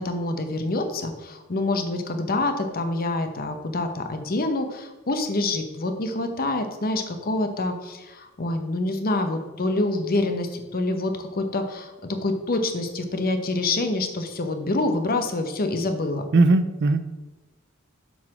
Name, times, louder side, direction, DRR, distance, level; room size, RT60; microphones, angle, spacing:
voice 1, 0.0-16.2, left 2 dB, 45° left, 7 dB, 0.9 m, -26 dB
voice 2, 16.3-17.1, right 3 dB, 55° right, 12 dB, 0.5 m, -18 dB
7.6 x 4.0 x 6.1 m, 1.1 s
head